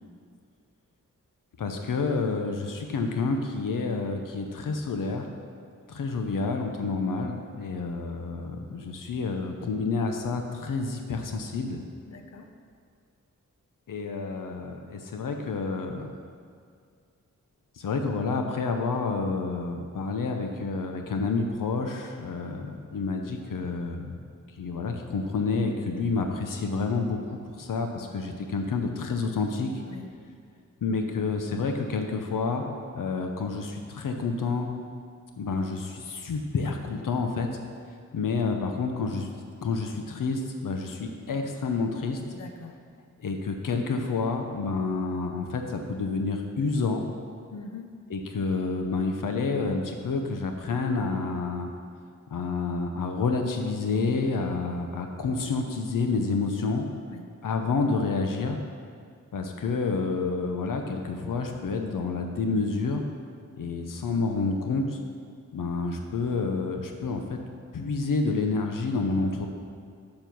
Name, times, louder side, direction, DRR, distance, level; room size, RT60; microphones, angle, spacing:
voice 1, 1.6-5.3 5.9-11.8 13.9-16.1 17.8-24.2 24.6-29.7 30.8-32.6 32.9-34.7 35.4-37.5 38.1-39.3 39.6-42.2 43.2-47.1 48.1-51.7 52.3-56.9 57.4-58.6 59.3-63.0 63.5-65.0 65.5-67.4 67.7-69.5, left 4 dB, 85° left, 4 dB, 0.8 m, -29 dB
voice 2, 12.1-12.5 29.8-30.1 42.3-42.7 47.5-47.9 57.1-57.2, left 3 dB, 55° left, 5 dB, 0.8 m, -42 dB
7.5 x 6.8 x 6.1 m, 2.2 s
wide cardioid pair, 75°, 31 cm